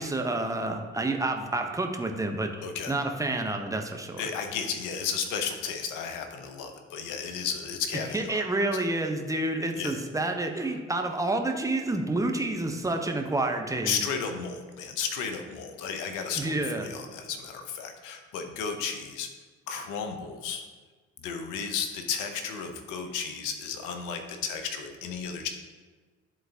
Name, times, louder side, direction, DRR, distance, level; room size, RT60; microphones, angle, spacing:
voice 1, 0.0-2.5 2.9-4.2 8.1-14.0 16.4-16.8, right 2 dB, 10° right, 4 dB, 0.8 m, -29 dB
voice 2, 2.6-2.9 4.2-8.4 9.8-10.0 13.8-19.3 19.7-20.7 21.2-25.5, left 6 dB, 70° left, 6 dB, 0.8 m, -33 dB
10.5 x 3.8 x 2.8 m, 1.4 s
hypercardioid pair, 50°, 32 cm